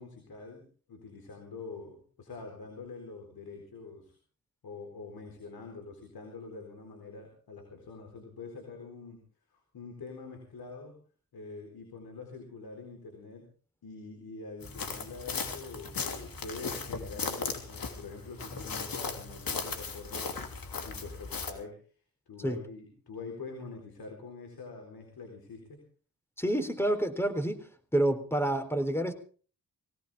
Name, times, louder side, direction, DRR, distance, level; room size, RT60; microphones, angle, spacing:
voice 1, 0.0-4.2 4.6-9.2 9.5-11.0 11.3-13.5 13.8-20.5 20.8-21.8 22.3-25.8, left 4 dB, 90° left, 3 dB, 4.2 m, -45 dB
sound 1, 14.6-21.5, left 4 dB, 70° left, 3.0 m, -37 dB
voice 2, 26.4-27.6 27.9-29.1, right 1 dB, 5° left, 8 dB, 3.8 m, -28 dB
20.0 x 18.0 x 3.6 m, 0.40 s
cardioid pair, 65°, 35 cm